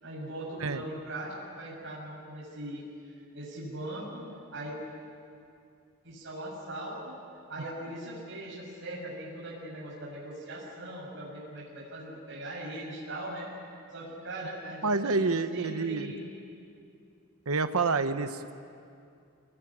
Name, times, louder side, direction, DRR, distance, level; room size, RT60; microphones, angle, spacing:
voice 1, 0.0-2.8 3.1-4.2 4.5-4.8 6.0-7.2 7.5-13.5 13.9-16.2, right 1 dB, 60° right, -4 dB, 6.4 m, -40 dB
voice 2, 14.8-16.1 17.5-18.5, right 4 dB, 80° right, 9 dB, 1.0 m, -28 dB
25.0 x 20.0 x 9.9 m, 2.4 s
head